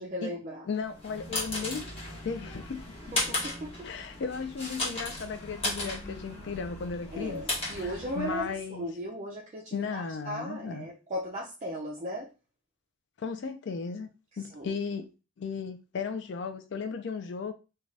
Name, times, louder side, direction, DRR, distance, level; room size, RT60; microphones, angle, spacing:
voice 1, 0.0-0.7 3.1-3.9 7.1-12.3 14.5-14.7, equal, 35° right, 0.4 m, -37 dB
voice 2, 0.7-1.9 2.2-3.0 3.8-8.8 9.7-10.9 13.2-14.1 14.4-15.1 15.4-17.5, left 5 dB, 60° left, 0.4 m, -35 dB
sound 1, 0.8-8.6, left 2 dB, 30° left, 1.0 m, -36 dB
2.5 x 2.2 x 3.2 m
head